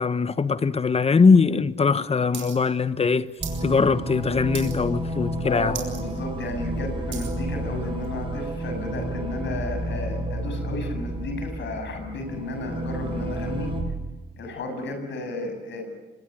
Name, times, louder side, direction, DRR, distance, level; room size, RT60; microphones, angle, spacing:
voice 1, 0.0-3.3 3.6-5.7, left 5 dB, 30° left, 1.1 m, -21 dB
sound 1, 2.3-2.6 2.8-3.6 4.0-4.2 4.5-5.0 5.4-5.5 5.7-6.0 6.5-7.4 8.0-8.1, right 8 dB, 70° right, 5.1 m, -37 dB
sound 2, 3.4-13.8, right 1 dB, 25° right, 7.0 m, -31 dB
voice 2, 5.4-13.7 14.4-15.8, left 2 dB, 65° left, 7.4 m, -33 dB
25.0 x 21.0 x 9.5 m
cardioid pair, 90°, 20 cm